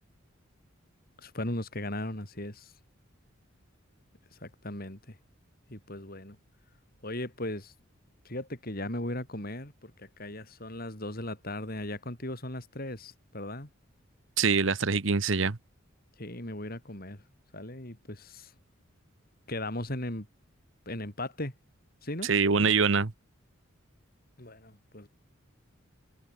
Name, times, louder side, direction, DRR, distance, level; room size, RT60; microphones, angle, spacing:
voice 1, 1.2-2.7 4.3-5.2 5.7-6.4 7.0-7.7 8.2-13.7 16.2-17.2 17.5-18.5 19.5-20.3 20.9-21.5 22.0-22.3 24.4-25.1, left 1 dB, 45° left, 6.1 m, -37 dB
voice 2, 14.4-15.6 22.2-23.1, right 5 dB, 70° right, 1.1 m, -24 dB
head